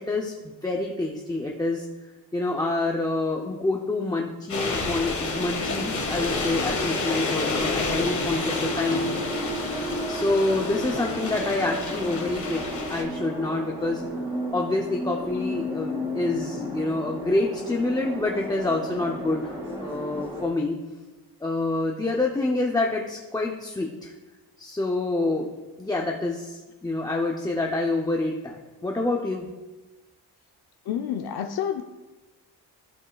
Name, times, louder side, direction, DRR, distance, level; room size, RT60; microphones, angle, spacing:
voice 1, 0.0-1.9 2.3-9.0 10.1-12.6 12.9-14.0 14.5-20.8 21.4-24.1 24.6-25.5 25.8-29.5, left 2 dB, 10° left, 0 dB, 0.5 m, -27 dB
sound 1, 4.5-13.0, left 3 dB, 45° left, 1.6 m, -30 dB
sound 2, 4.5-20.5, equal, 15° right, 1.9 m, -34 dB
voice 2, 30.9-31.8, left 9 dB, 65° left, 5 dB, 0.5 m, -28 dB
14.0 x 5.3 x 2.3 m, 1.2 s
wide cardioid pair, 140°, 42 cm